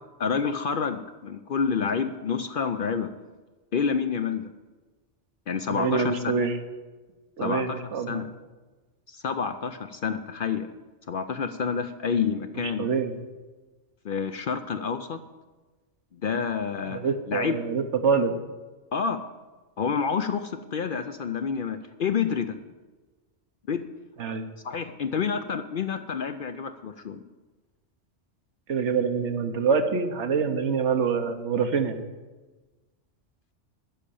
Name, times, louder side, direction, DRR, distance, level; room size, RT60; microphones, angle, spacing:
voice 1, 0.2-3.1 3.7-4.5 5.5-6.2 7.4-7.8 8.1-8.3 9.1-10.7 11.1-12.9 14.0-15.2 16.1-17.0 17.3-17.6 18.9-19.2 19.8-22.6 23.7-23.8 24.3-24.4 24.6-27.2, left 6 dB, 55° left, 9 dB, 0.6 m, -28 dB
voice 2, 5.7-6.6 7.4-8.2 12.8-13.2 16.9-18.3 24.2-24.5 28.7-32.0, right 5 dB, 70° right, 7 dB, 1.2 m, -25 dB
10.0 x 6.4 x 8.5 m, 1.2 s
omnidirectional pair, 1.3 m